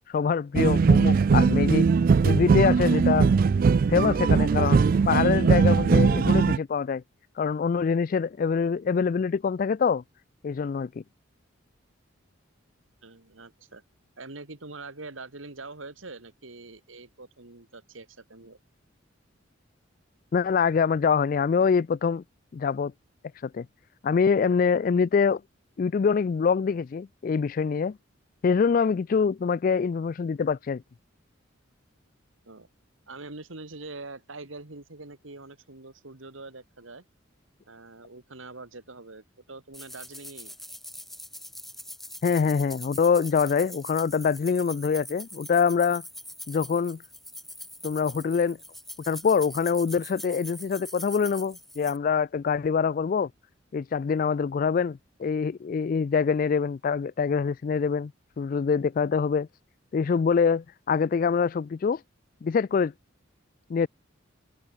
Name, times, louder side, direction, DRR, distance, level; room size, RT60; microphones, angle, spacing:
voice 1, 0.1-1.9 2.2-3.3 3.9-7.0 7.4-10.0 10.4-10.9 20.3-22.2 22.5-22.9 23.4-23.7 24.0-25.4 25.8-28.0 28.4-30.8 42.2-46.0 46.5-47.0 47.8-48.6 49.1-53.3 53.7-58.1 58.4-59.5 59.9-62.0 62.4-62.9 63.7-63.9, left 6 dB, 45° left, 0.3 m, -24 dB
sound 1, 0.5-6.6, right 5 dB, 45° right, 0.3 m, -20 dB
voice 2, 13.0-13.8 14.2-18.6 32.5-32.7 33.1-37.0 37.7-40.6, right 3 dB, 80° right, 2.4 m, -44 dB
sound 2, 39.7-52.0, left 1 dB, ahead, 2.5 m, -43 dB
head